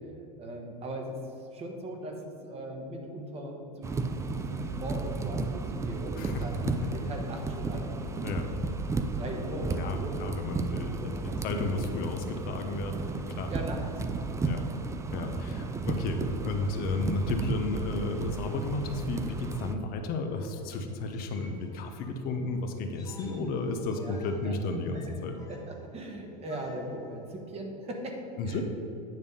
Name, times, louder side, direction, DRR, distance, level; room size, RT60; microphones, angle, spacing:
voice 1, 0.4-6.6 6.9-8.3 9.1-11.7 13.5-14.6 15.1-15.2 15.5-15.7 24.0-24.2 24.4-24.5 24.9-25.0 25.5-28.6, right 1 dB, 30° right, 2 dB, 1.4 m, -39 dB
sound 1, 3.8-19.8, right 3 dB, 15° right, 0.5 m, -34 dB
voice 2, 9.8-13.5 14.4-14.6 15.1-25.4 28.4-28.6, left 3 dB, 50° left, 5 dB, 0.9 m, -33 dB
sound 2, 20.3-27.3, left 2 dB, 20° left, 1.4 m, -56 dB
9.3 x 3.5 x 6.9 m, 2.9 s
supercardioid pair, 110°, 20 cm